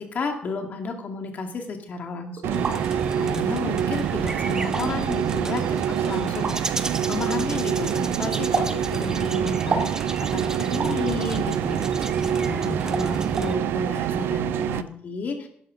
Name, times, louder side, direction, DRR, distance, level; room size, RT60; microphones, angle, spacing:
voice 1, 0.0-6.7 7.1-9.9 10.2-11.8 12.4-15.5, left 4 dB, 50° left, 3 dB, 2.2 m, -32 dB
sound 1, 2.4-2.8 3.7-3.8 4.6-4.8 6.4-6.6 8.5-8.7 9.7-10.0 10.8-11.0 12.2-12.4 12.9-13.1 13.4-13.5, right 4 dB, 45° right, 2.2 m, -27 dB
sound 2, 2.4-14.8, right 9 dB, 80° right, 0.5 m, -26 dB
sound 3, 2.5-13.6, right 2 dB, 15° right, 0.7 m, -33 dB
12.0 x 11.0 x 3.9 m, 0.64 s
cardioid pair, 115°, 4 cm